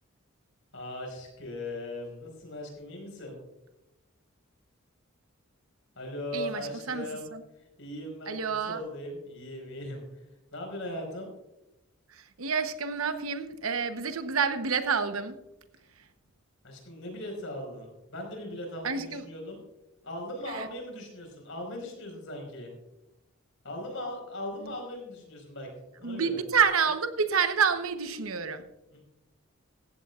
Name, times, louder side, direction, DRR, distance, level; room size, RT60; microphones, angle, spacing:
voice 1, 0.7-3.4 5.9-7.3 7.8-10.2 10.5-11.3 16.6-19.6 20.0-22.7 23.6-25.7 26.0-26.4 28.9-29.0, left 1 dB, 65° left, 2 dB, 4.9 m, -39 dB
voice 2, 6.3-7.1 7.3-7.4 8.3-8.8 12.1-15.4 18.8-19.2 20.5-20.7 24.6-24.7 26.0-28.7, right 6 dB, 80° right, 9 dB, 1.0 m, -28 dB
16.0 x 15.0 x 2.4 m, 0.95 s
head